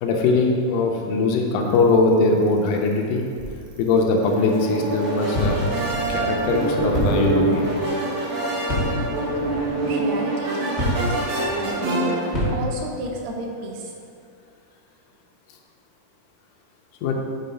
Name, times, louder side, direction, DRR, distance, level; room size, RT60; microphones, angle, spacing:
voice 1, 0.0-3.2 3.8-5.6 6.1-7.7 17.0-17.1, left 3 dB, 80° left, 1 dB, 2.1 m, -21 dB
Bicycle, 1.6-9.7, left 1 dB, 70° right, 2.2 m, -40 dB
sound 1, 3.4-3.9 5.3-6.0 6.9-7.5 8.7-9.3 10.8-11.3 12.3-12.9, left 1 dB, 35° left, 0.7 m, -26 dB
sound 2, 4.2-12.5, right 2 dB, 55° right, 1.3 m, -25 dB
voice 2, 9.8-12.2 12.5-13.9, right 1 dB, 85° right, 1 dB, 2.5 m, -32 dB
6.6 x 3.9 x 5.4 m, 2.6 s
omnidirectional pair, 3.8 m